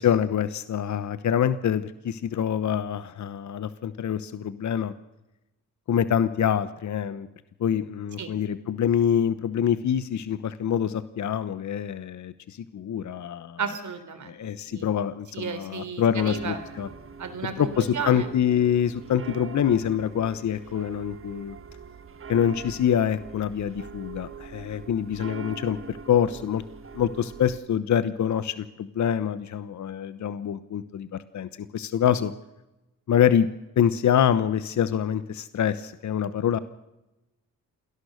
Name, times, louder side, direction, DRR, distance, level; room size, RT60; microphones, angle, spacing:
voice 1, 0.0-4.9 5.9-7.3 7.6-13.6 14.2-16.9 17.6-21.6 22.3-26.6 26.9-32.3 33.1-33.5 33.8-36.6, left 9 dB, 55° left, 14 dB, 1.1 m, -25 dB
voice 2, 13.6-14.4 14.7-14.9 15.3-16.6 17.2-18.3, right 6 dB, 60° right, 9 dB, 3.8 m, -33 dB
sound 1, 16.2-27.6, right 5 dB, 40° right, 1.6 m, -43 dB
27.5 x 18.5 x 6.6 m, 0.99 s
supercardioid pair, 65°, 33 cm